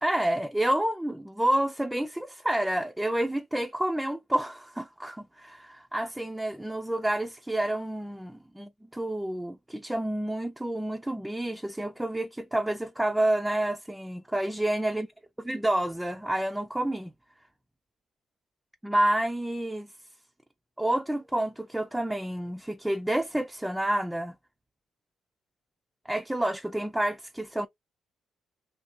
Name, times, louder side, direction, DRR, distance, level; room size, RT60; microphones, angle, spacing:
voice 1, 0.0-15.1 15.4-17.1 18.8-19.9 20.8-24.3 26.1-27.7, right 1 dB, 5° right, 0.4 m, -29 dB
3.3 x 2.7 x 2.5 m
cardioid pair, 90°, 0 cm